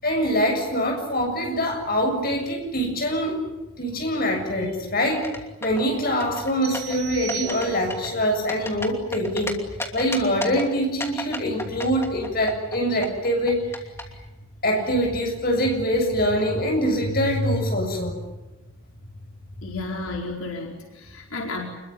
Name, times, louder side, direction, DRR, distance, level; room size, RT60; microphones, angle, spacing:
voice 1, 0.0-3.4 3.8-5.3 5.6-9.6 9.9-13.8 14.6-18.1, equal, 45° left, 3 dB, 7.3 m, -24 dB
sound 1, 5.1-5.8 6.2-7.0 7.3-7.7 7.9-9.5 9.8-10.6 11.0-12.8 13.0-14.0, left 2 dB, 10° left, 2.8 m, -32 dB
sound 2, 6.6-8.2, right 14 dB, 10° right, 3.0 m, -36 dB
voice 2, 19.6-21.7, left 3 dB, 85° left, 1 dB, 4.5 m, -32 dB
27.5 x 22.0 x 9.8 m, 1.1 s
head